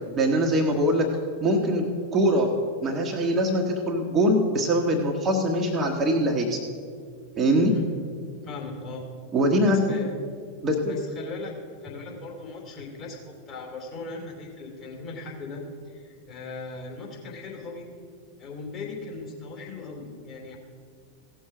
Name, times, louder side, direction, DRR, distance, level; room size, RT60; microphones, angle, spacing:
voice 1, 0.2-1.0 1.4-2.5 2.8-6.6 7.4-7.7 9.3-10.0 10.6-11.0, equal, 25° right, 2 dB, 1.2 m, -23 dB
voice 2, 8.4-9.1 9.6-10.1 10.9-17.9 18.4-20.6, left 3 dB, 30° left, -2 dB, 3.1 m, -38 dB
16.0 x 6.4 x 6.0 m, 2.1 s
figure-of-eight pair, 90°, 0 cm